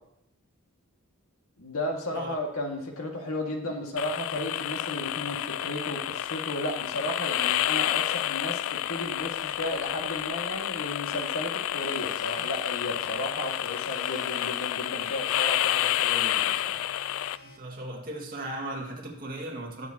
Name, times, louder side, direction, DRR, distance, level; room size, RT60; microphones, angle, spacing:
voice 1, 1.6-16.8, left 1 dB, 90° left, 1 dB, 2.0 m, -34 dB
sound 1, 4.0-17.4, left 12 dB, 70° left, 0.3 m, -29 dB
sound 2, 11.8-17.6, left 2 dB, 50° left, 1.4 m, -51 dB
voice 2, 17.4-19.9, right 1 dB, 45° right, 0 dB, 2.1 m, -37 dB
19.5 x 7.3 x 2.9 m, 0.76 s
head